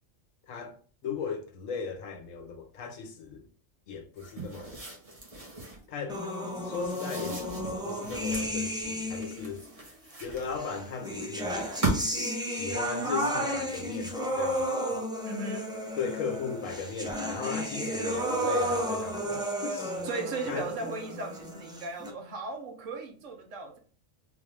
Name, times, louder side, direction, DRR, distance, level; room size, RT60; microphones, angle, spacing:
voice 1, 0.5-3.5 3.9-4.8 5.9-6.2 6.6-9.7 10.2-11.7 12.5-15.0 16.0-20.1 20.4-20.7, left 5 dB, 80° left, 1.1 m, -37 dB
sound 1, 4.2-5.9 6.7-8.6 9.2-10.8 11.5-12.3, right 2 dB, 30° right, 1.0 m, -36 dB
sound 2, 6.1-9.6 10.6-22.1, equal, 5° right, 0.4 m, -33 dB
voice 2, 15.2-15.7 20.0-23.8, right 3 dB, 75° right, 1.1 m, -37 dB
3.8 x 2.5 x 3.3 m
omnidirectional pair, 1.3 m